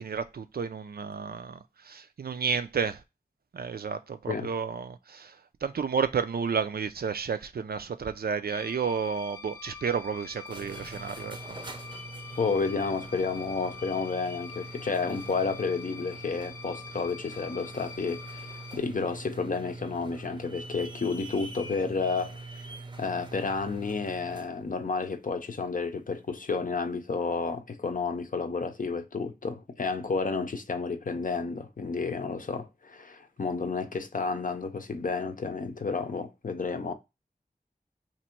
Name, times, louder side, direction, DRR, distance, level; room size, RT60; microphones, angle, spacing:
voice 1, 0.0-3.0 3.5-5.3 5.6-11.4, right 6 dB, 80° right, 0.4 m, -31 dB
sound 1, 8.5-18.8, left 5 dB, 15° left, 0.7 m, -45 dB
sound 2, 10.3-24.6, right 3 dB, 30° right, 0.6 m, -44 dB
voice 2, 12.4-36.9, left 4 dB, 60° left, 0.6 m, -31 dB
2.9 x 2.6 x 4.3 m
wide cardioid pair, 55°, 16 cm